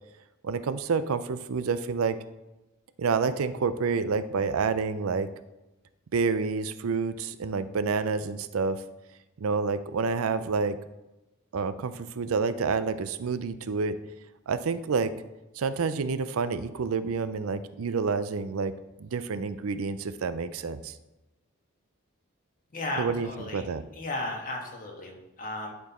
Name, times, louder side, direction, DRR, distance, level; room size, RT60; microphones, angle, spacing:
voice 1, 0.4-2.2 3.0-5.3 6.1-8.8 9.4-10.8 11.5-14.0 14.5-15.1 15.6-18.7 19.0-21.0 23.0-23.8, right 5 dB, 85° right, 13 dB, 0.5 m, -28 dB
voice 2, 22.7-23.6 23.9-25.7, left 2 dB, 40° left, 0 dB, 1.5 m, -35 dB
11.0 x 4.4 x 4.2 m, 1.0 s
head